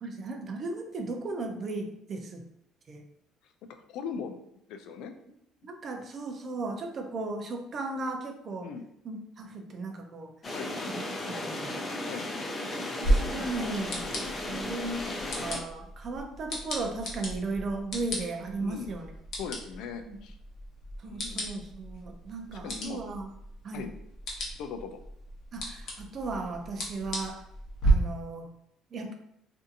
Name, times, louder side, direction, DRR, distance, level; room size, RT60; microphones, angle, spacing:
voice 1, 0.0-2.4 2.9-3.0 5.6-8.7 9.0-10.3 10.9-11.7 12.9-14.1 14.5-19.1 20.1-20.2 21.0-23.3 23.6-23.9 25.5-27.5 27.8-28.5 28.9-29.1, right 3 dB, 40° right, 4 dB, 0.4 m, -36 dB
voice 2, 3.9-4.4 4.7-5.1 8.6-8.8 10.5-10.7 12.0-12.3 13.2-13.5 18.6-18.9 19.4-20.4 21.0-21.5 22.5-23.0 23.7-23.9 24.6-25.0, left 6 dB, 75° left, 7 dB, 0.3 m, -39 dB
sound 1, 10.4-15.6, left 1 dB, 25° left, 0.5 m, -35 dB
sound 2, 13.0-27.9, right 1 dB, 60° left, 0.8 m, -35 dB
2.6 x 2.6 x 2.4 m, 0.76 s
cardioid pair, 120°, 0 cm